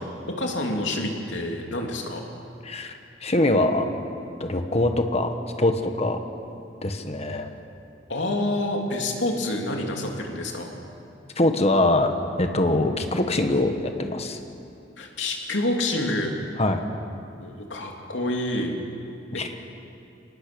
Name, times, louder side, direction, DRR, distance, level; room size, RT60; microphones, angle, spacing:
voice 1, 0.0-2.2 8.1-10.7 15.0-16.3 17.4-18.7 19.3-19.4, left 1 dB, 70° left, 1 dB, 3.0 m, -28 dB
voice 2, 2.6-2.9 3.2-3.8 4.4-5.3 5.6-6.2 6.8-7.5 11.3-12.1 12.4-14.4 16.6-16.8 19.4-19.5, left 2 dB, 35° left, 6 dB, 1.6 m, -23 dB
25.0 x 19.0 x 7.1 m, 2.6 s
head